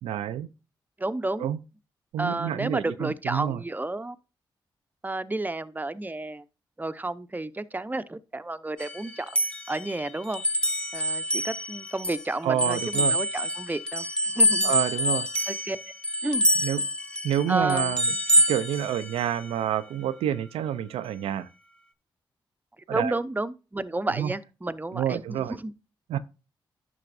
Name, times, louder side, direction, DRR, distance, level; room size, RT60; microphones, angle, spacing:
voice 1, 0.0-0.5 1.4-1.6 2.1-3.6 12.4-13.2 14.6-15.3 16.6-16.8 17.2-18.2 18.5-21.5 22.9-23.2 24.2-24.3 24.9-25.6 26.1-26.2, right 10 dB, 85° right, 0.5 m, -28 dB
voice 2, 1.0-1.5 2.2-4.2 5.0-6.4 6.8-9.3 9.7-10.4 10.9-14.7 15.5-15.8 16.2-16.5 17.5-18.0 22.9-25.7, right 2 dB, 20° right, 0.7 m, -31 dB
sound 1, 8.8-12.2 12.6-19.5, equal, 10° left, 1.5 m, -26 dB
11.0 x 6.1 x 2.6 m
supercardioid pair, 40°, 10 cm